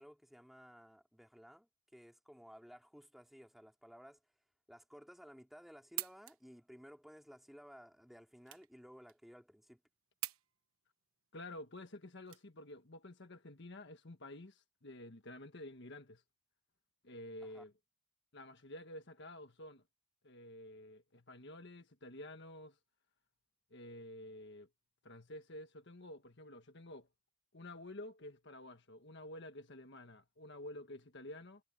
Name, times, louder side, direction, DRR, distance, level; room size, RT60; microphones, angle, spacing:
voice 1, 0.0-4.2 4.7-9.8 17.4-17.6, equal, ahead, 3.0 m, -57 dB
sound 1, 5.6-13.0, right 15 dB, 80° right, 1.2 m, -48 dB
voice 2, 11.3-16.2 17.0-17.7 18.3-19.8 20.2-22.8 23.7-24.7 25.0-27.1 27.5-31.6, left 1 dB, 55° left, 1.5 m, -50 dB
head